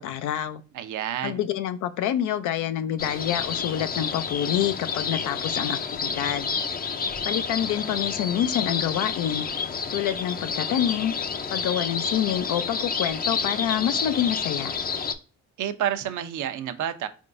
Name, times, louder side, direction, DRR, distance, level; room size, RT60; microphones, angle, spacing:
voice 1, 0.0-0.6 1.2-6.5 7.2-9.5 9.9-11.1 11.5-14.8, left 10 dB, 85° left, 0.5 m, -27 dB
voice 2, 0.7-1.4 15.6-17.1, right 10 dB, 75° right, 0.6 m, -29 dB
sound 1, 3.0-15.1, left 5 dB, 30° left, 0.5 m, -29 dB
4.6 x 3.5 x 2.5 m
cardioid pair, 90°, 30 cm